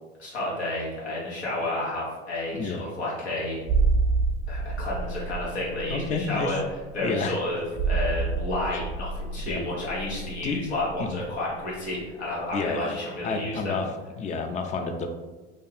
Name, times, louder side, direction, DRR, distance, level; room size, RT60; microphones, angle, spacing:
voice 1, 0.2-3.7 4.5-6.6 6.9-13.8, left 1 dB, 85° left, -5 dB, 1.1 m, -31 dB
voice 2, 2.5-2.9 5.9-6.5 7.0-7.4 8.7-8.8 9.5-9.6 10.4-10.6 11.0-11.2 12.5-13.0 13.2-13.9 14.2-15.1, left 4 dB, 25° left, 5 dB, 0.3 m, -29 dB
sound 1, 3.7-12.1 12.3-12.5, right 4 dB, 40° right, 0.6 m, -29 dB
2.6 x 2.3 x 3.2 m, 1.2 s
hypercardioid pair, 75°, 32 cm